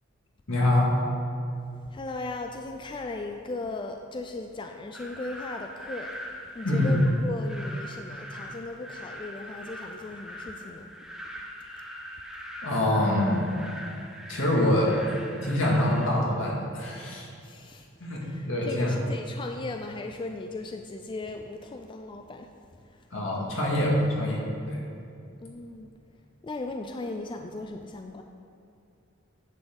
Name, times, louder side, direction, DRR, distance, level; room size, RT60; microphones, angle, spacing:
voice 1, 0.5-0.9 6.6-7.0 12.6-13.5 14.3-15.0 15.4-17.3 18.0-18.2 18.5-18.9 23.1-24.8, left 1 dB, 75° left, -3 dB, 2.1 m, -25 dB
voice 2, 1.8-6.2 6.5-10.9 17.4-17.9 18.2-22.5 25.4-25.9 26.4-28.2, left 2 dB, 25° left, 5 dB, 0.3 m, -37 dB
sound 1, 4.9-16.1, equal, ahead, 0.8 m, -42 dB
10.5 x 7.1 x 3.9 m, 2.5 s
head